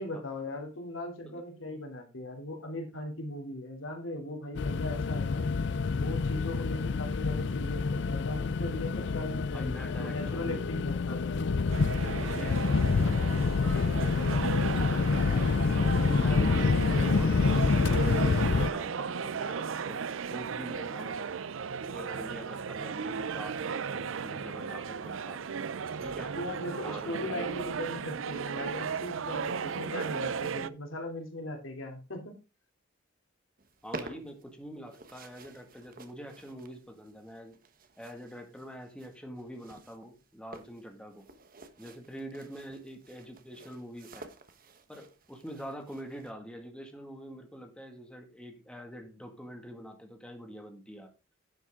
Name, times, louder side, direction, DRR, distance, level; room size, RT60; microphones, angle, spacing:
voice 1, 0.0-5.5 6.0-11.6 26.3-32.3, left 1 dB, 85° left, 3 dB, 3.1 m, -39 dB
sound 1, 4.6-18.7, left 4 dB, 60° left, 0.5 m, -27 dB
voice 2, 9.4-10.6 12.2-17.3 17.8-21.3 21.8-25.4 26.0-26.4 26.8-27.5 33.8-37.6 38.0-41.3 41.8-44.3 44.9-51.1, equal, 5° left, 4 dB, 2.0 m, -45 dB
sound 2, 11.7-30.7, right 6 dB, 80° right, 0.5 m, -35 dB
sound 3, 33.6-46.3, right 3 dB, 45° right, 1.3 m, -50 dB
10.5 x 8.8 x 3.7 m, 0.30 s
head